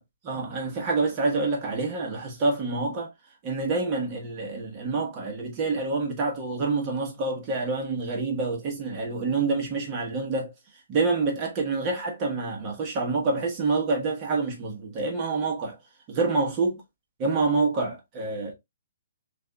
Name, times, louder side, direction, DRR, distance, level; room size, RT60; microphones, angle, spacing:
voice 1, 0.2-3.1 3.4-10.5 10.9-15.8 16.1-16.8 17.2-18.5, right 3 dB, 20° right, 1.1 m, -27 dB
6.4 x 2.5 x 2.2 m
hypercardioid pair, 170°, 0 cm